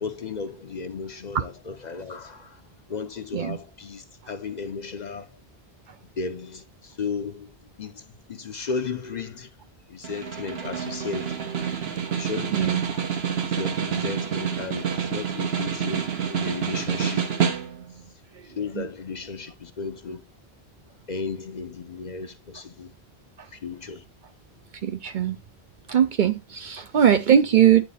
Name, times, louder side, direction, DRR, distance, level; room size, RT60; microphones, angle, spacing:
voice 1, 0.0-2.6 2.9-5.3 6.2-9.5 9.9-11.6 12.2-17.3 18.4-20.2 21.1-22.9 23.5-24.0, left 5 dB, 50° left, 0.7 m, -35 dB
Snare drum, 10.0-18.0, right 7 dB, 75° right, 1.2 m, -28 dB
voice 2, 12.5-12.8 18.8-18.9 24.8-25.4 25.9-27.8, right 9 dB, 60° right, 0.6 m, -20 dB
9.2 x 3.1 x 4.0 m
omnidirectional pair, 1.1 m